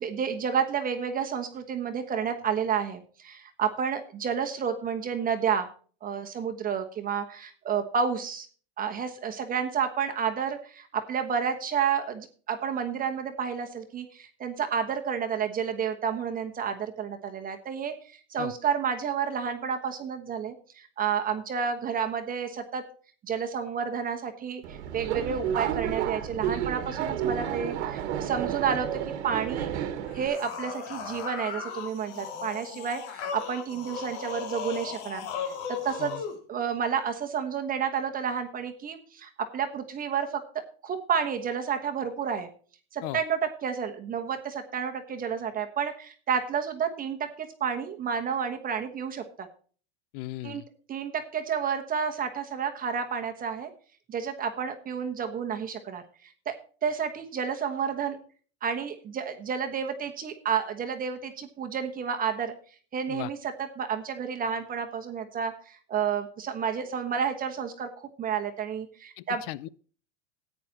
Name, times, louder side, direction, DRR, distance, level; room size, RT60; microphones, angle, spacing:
voice 1, 0.0-5.7 6.0-8.5 8.8-22.8 23.2-29.7 30.1-35.3 35.7-36.1 36.5-40.4 40.8-42.5 42.9-49.5 50.4-50.6 50.9-53.7 54.1-56.5 56.8-58.2 58.6-62.5 62.9-69.4, right 7 dB, 25° right, 1.2 m, -30 dB
Subway metro underground, 24.6-30.3, right 9 dB, 85° right, 1.7 m, -31 dB
sound 1, 30.1-36.4, left 6 dB, 80° left, 2.4 m, -37 dB
voice 2, 50.1-50.6 63.1-63.3 69.2-69.7, left 17 dB, 55° left, 0.6 m, -37 dB
14.5 x 9.3 x 2.9 m
supercardioid pair, 145°, 34 cm